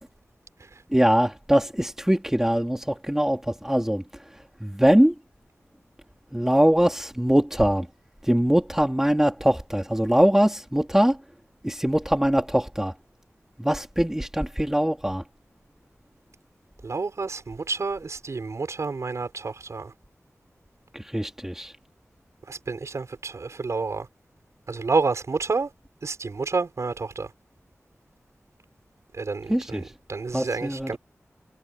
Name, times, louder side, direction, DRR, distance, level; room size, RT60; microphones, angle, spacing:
voice 1, 0.9-4.0 4.6-5.1 6.3-7.9 8.2-11.2 11.6-12.9 13.6-15.2 20.9-21.7 29.5-29.9 30.3-31.0, equal, 10° right, 2.6 m, -22 dB
voice 2, 16.8-19.9 22.5-24.1 24.7-25.7 26.0-27.3 29.1-31.0, right 4 dB, 75° right, 6.4 m, -29 dB
wide cardioid pair, 50°, 5 cm